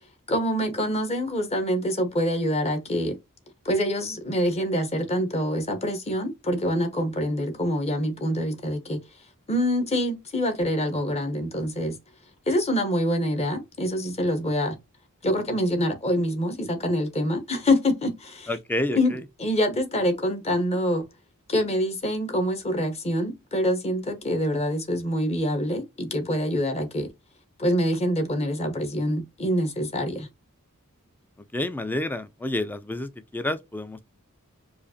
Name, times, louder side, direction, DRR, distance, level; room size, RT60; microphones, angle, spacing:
voice 1, 0.3-3.1 3.6-9.0 9.5-11.9 12.5-14.8 15.2-18.5 18.9-21.1 21.5-27.1 27.6-30.3, equal, 30° left, 0.9 m, -25 dB
voice 2, 18.5-19.2 31.4-34.0, left 1 dB, 10° left, 0.3 m, -29 dB
4.8 x 2.5 x 2.7 m
head